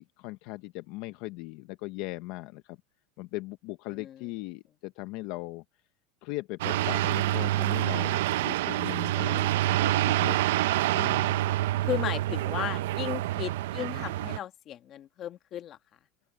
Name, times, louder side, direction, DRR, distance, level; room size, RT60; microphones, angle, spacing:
voice 1, 0.0-2.8 3.2-5.6 6.2-10.4 10.9-11.5, left 20 dB, 50° left, 0.6 m, -39 dB
sound 1, 6.6-14.4, right 15 dB, 85° right, 0.4 m, -27 dB
voice 2, 11.8-15.8, left 11 dB, 30° left, 1.4 m, -35 dB
open air
supercardioid pair, 170°, 0 cm